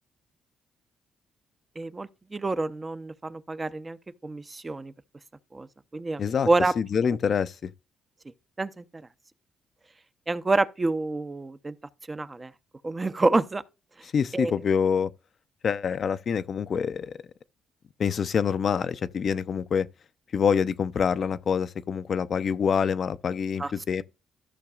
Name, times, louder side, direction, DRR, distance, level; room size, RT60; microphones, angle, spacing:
voice 1, 1.8-4.9 5.5-5.7 5.9-6.7 8.6-9.0 10.3-11.8 12.1-12.5 12.8-13.6 14.0-14.1 14.3-14.5 23.6-23.7, right 2 dB, 25° right, 0.6 m, -28 dB
voice 2, 6.2-6.5 6.8-7.7 14.1-15.1 15.6-17.1 18.0-19.9 20.3-24.0, left 7 dB, 50° left, 0.5 m, -26 dB
13.5 x 5.9 x 2.4 m
cardioid pair, 90°, 0 cm